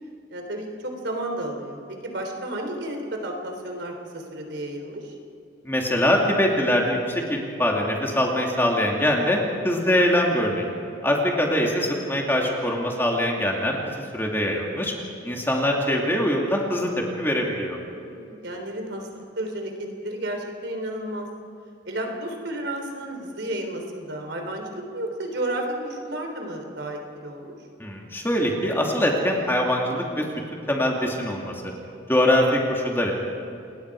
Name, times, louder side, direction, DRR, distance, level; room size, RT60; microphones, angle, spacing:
voice 1, 0.3-5.1 18.0-21.3 21.9-27.5, right 1 dB, 75° right, 3 dB, 3.6 m, -32 dB
voice 2, 5.6-10.7 11.0-13.8 14.1-14.9 15.2-16.9 17.2-17.8 27.8-30.2 30.5-31.6 32.1-33.1, left 1 dB, 10° left, -1 dB, 2.7 m, -23 dB
28.5 x 20.0 x 4.9 m, 2.7 s
head